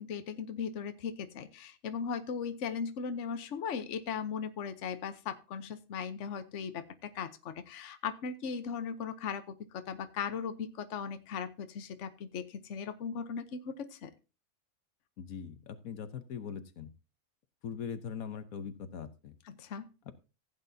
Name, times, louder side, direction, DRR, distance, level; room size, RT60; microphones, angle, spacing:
voice 1, 0.0-14.1 19.5-19.9, left 6 dB, 60° left, 10 dB, 1.2 m, -38 dB
voice 2, 15.2-16.9 17.6-19.3 20.1-20.2, left 7 dB, 75° left, 11 dB, 1.4 m, -41 dB
15.5 x 8.8 x 2.7 m, 0.31 s
omnidirectional pair, 1.5 m